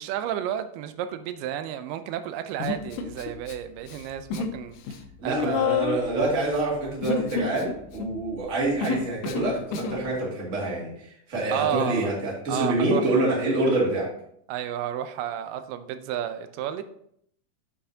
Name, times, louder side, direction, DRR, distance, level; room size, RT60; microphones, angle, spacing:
voice 1, 0.0-4.8 5.2-5.6 11.5-12.1 12.5-13.1 14.5-16.8, right 10 dB, 90° right, 10 dB, 2.2 m, -31 dB
Human voice, 2.6-3.5 3.8-4.6 4.8-10.0, left 6 dB, 85° left, 2.2 m, -30 dB
voice 2, 5.2-10.9 11.3-14.1, right 2 dB, 30° right, -4 dB, 1.9 m, -26 dB
7.7 x 6.4 x 2.7 m, 0.68 s
omnidirectional pair, 3.8 m